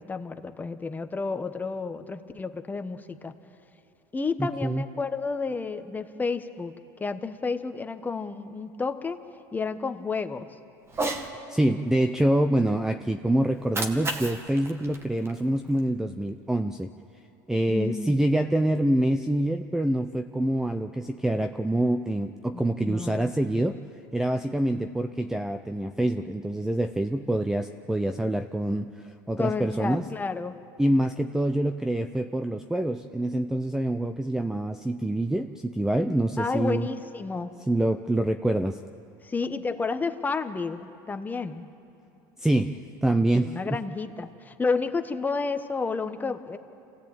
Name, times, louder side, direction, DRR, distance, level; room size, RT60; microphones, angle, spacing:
voice 1, 0.0-3.3 4.1-6.7 7.0-9.2 9.5-10.5 17.7-18.1 22.5-23.3 29.4-30.6 36.4-37.5 39.2-41.7 43.3-46.6, left 4 dB, 15° left, 8 dB, 1.3 m, -31 dB
voice 2, 4.4-4.8 11.5-16.9 17.5-23.8 24.1-30.0 30.8-36.9 37.7-38.8 42.4-43.8, right 1 dB, 5° right, 8 dB, 0.7 m, -26 dB
Cat, 10.9-11.3 13.5-15.9, right 2 dB, 25° right, 2.0 m, -33 dB
26.5 x 17.0 x 8.9 m, 2.8 s
supercardioid pair, 105°, 10 cm